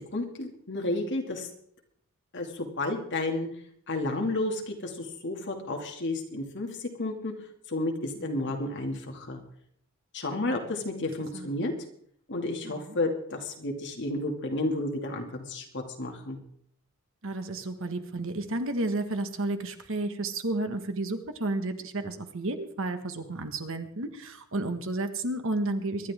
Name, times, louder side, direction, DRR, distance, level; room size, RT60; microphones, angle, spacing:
voice 1, 0.1-1.5 2.3-3.5 3.9-7.3 7.7-9.4 10.1-11.7 12.3-16.4, left 2 dB, 55° left, 2 dB, 2.4 m, -31 dB
voice 2, 10.3-10.7 11.3-11.5 12.6-13.0 17.2-26.1, right 2 dB, 65° right, 8 dB, 1.5 m, -32 dB
24.0 x 11.5 x 3.7 m, 0.66 s
head